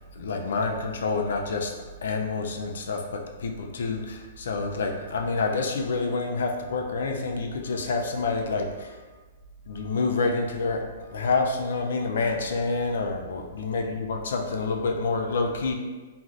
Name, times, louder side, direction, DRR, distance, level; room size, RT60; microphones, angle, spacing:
voice 1, 0.2-1.7 2.0-9.0 9.7-15.7, left 3 dB, 75° left, 2 dB, 0.4 m, -28 dB
3.1 x 2.5 x 2.5 m, 1.3 s
hypercardioid pair, 170°, 0 cm